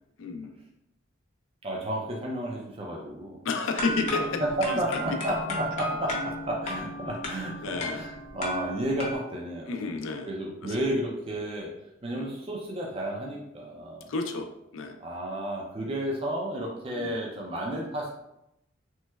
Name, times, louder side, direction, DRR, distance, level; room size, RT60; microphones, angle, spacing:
voice 1, 0.2-0.5 3.4-4.4 4.7-5.0 7.3-8.0 9.7-10.3 10.6-10.8 12.1-12.4 14.1-15.0 16.9-17.2, left 4 dB, 80° left, 4 dB, 0.4 m, -32 dB
voice 2, 1.6-3.4 4.1-9.9 10.3-11.7 12.0-14.1 15.0-18.1, right 1 dB, 30° right, -2 dB, 0.4 m, -32 dB
sound 1, 3.8-9.1, left 1 dB, 35° left, 0.6 m, -34 dB
3.1 x 3.1 x 2.2 m, 0.83 s
head